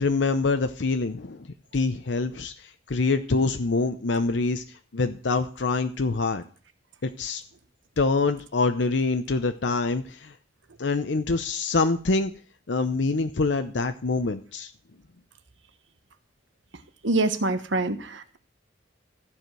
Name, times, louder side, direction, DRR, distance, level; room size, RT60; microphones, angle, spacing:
voice 1, 0.0-1.5 1.7-4.6 4.9-6.4 7.0-7.4 8.0-10.3 10.8-12.3 12.7-14.7, left 3 dB, 75° left, 8 dB, 0.7 m, -25 dB
voice 2, 17.0-18.4, right 2 dB, 80° right, 10 dB, 1.1 m, -25 dB
13.5 x 5.0 x 7.6 m, 0.41 s
head